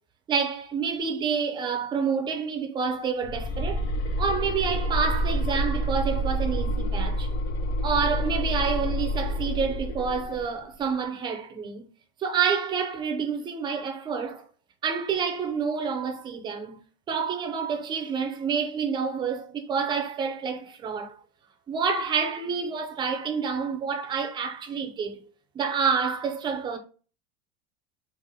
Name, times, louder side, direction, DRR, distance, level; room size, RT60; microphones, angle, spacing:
voice 1, 0.3-3.9 4.2-7.3 7.8-11.9 12.2-14.5 14.8-16.8 17.1-21.2 21.7-25.2 25.5-26.8, right 6 dB, 15° right, 0.4 m, -28 dB
sound 1, 3.2-10.5, equal, 90° left, 0.9 m, -28 dB
3.6 x 2.5 x 3.4 m
supercardioid pair, 160°, 32 cm